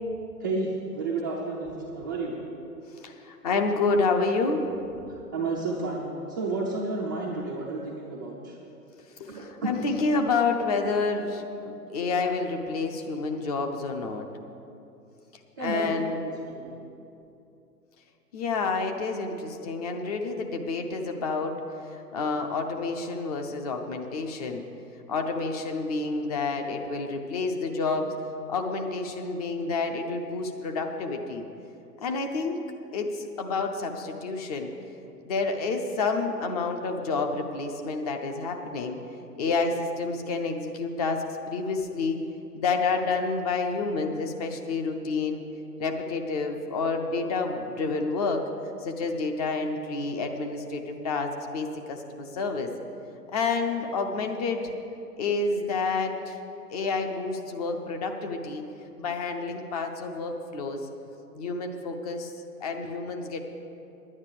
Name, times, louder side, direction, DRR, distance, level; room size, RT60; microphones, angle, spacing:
voice 1, 0.4-2.4 5.1-8.6 9.3-10.0 15.6-16.7, right 3 dB, 15° right, -6 dB, 0.4 m, -31 dB
voice 2, 3.0-4.6 9.2-14.3 15.6-16.2 18.3-21.5 21.9-24.6 25.1-28.1 28.5-31.5 32.0-32.6 32.9-34.7 35.2-39.0 39.4-42.2 42.5-45.4 45.8-48.5 48.8-52.7 53.3-54.7 55.2-56.4 56.7-58.6 59.0-60.9 61.3-62.3 62.6-63.4, left 4 dB, 25° left, 4 dB, 0.7 m, -29 dB
10.0 x 9.6 x 6.9 m, 2.7 s
figure-of-eight pair, 125°, 48 cm